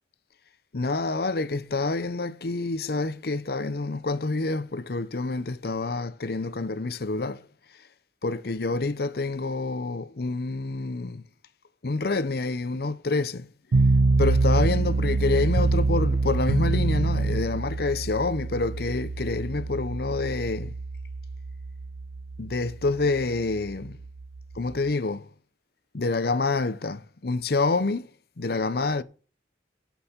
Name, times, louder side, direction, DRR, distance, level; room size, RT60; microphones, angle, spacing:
voice 1, 0.7-7.4 8.2-11.2 11.8-13.5 14.2-20.7 22.4-24.0 24.5-25.3 25.9-28.1 28.4-29.0, left 3 dB, 60° left, 0.7 m, -27 dB
sound 1, 13.7-24.9, right 3 dB, 90° right, 0.5 m, -25 dB
8.2 x 8.1 x 7.2 m
head